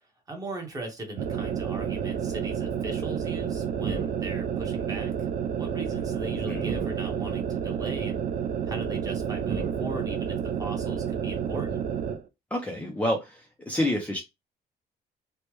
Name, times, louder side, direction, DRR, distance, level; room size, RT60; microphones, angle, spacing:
voice 1, 0.3-8.2 8.7-11.8, right 1 dB, 20° right, 2 dB, 0.9 m, -39 dB
sound 1, 1.2-12.2, right 8 dB, 55° right, 0.4 m, -30 dB
voice 2, 12.5-14.2, left 1 dB, 10° left, 1 dB, 0.4 m, -28 dB
3.2 x 2.1 x 3.0 m, 0.22 s
cardioid pair, 155°, 17 cm